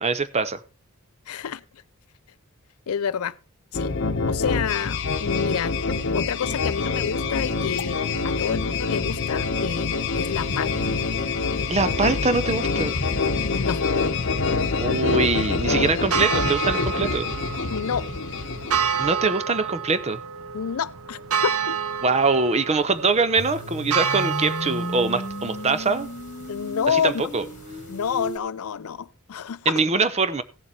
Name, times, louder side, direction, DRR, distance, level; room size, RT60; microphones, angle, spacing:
voice 1, 0.0-0.6 11.7-13.0 14.8-17.3 19.0-20.2 22.0-26.1 26.9-27.5 29.7-30.4, right 4 dB, 30° right, 0.7 m, -23 dB
voice 2, 1.3-1.6 2.9-3.4 3.7-3.9 4.3-5.7 6.1-10.9 13.4-13.8 17.7-18.1 20.5-21.8 26.5-27.1 27.9-29.8, left 7 dB, 75° left, 0.5 m, -29 dB
sound 1, 3.7-19.3, left 4 dB, 55° left, 0.9 m, -26 dB
sound 2, 10.2-28.3, right 7 dB, 70° right, 0.9 m, -31 dB
sound 3, 23.4-28.4, left 2 dB, 35° left, 1.5 m, -35 dB
16.0 x 7.1 x 4.3 m
head